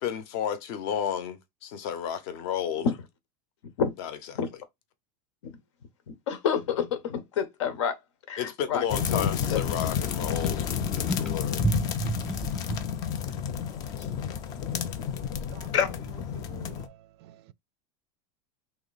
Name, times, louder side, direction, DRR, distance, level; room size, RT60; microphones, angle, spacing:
voice 1, 0.0-2.9 4.0-4.1 8.4-11.6, left 9 dB, 45° left, 0.7 m, -32 dB
voice 2, 6.1-8.0 8.3-9.6 14.0-14.1 15.7-16.3, left 7 dB, 80° left, 1.0 m, -29 dB
sound 1, 8.9-16.9, left 8 dB, 25° left, 0.4 m, -31 dB
sound 2, 9.6-15.3, right 2 dB, 5° left, 0.8 m, -35 dB
voice 3, 16.4-17.5, right 14 dB, 60° right, 0.4 m, -49 dB
3.0 x 2.8 x 4.1 m
supercardioid pair, 170°, 15 cm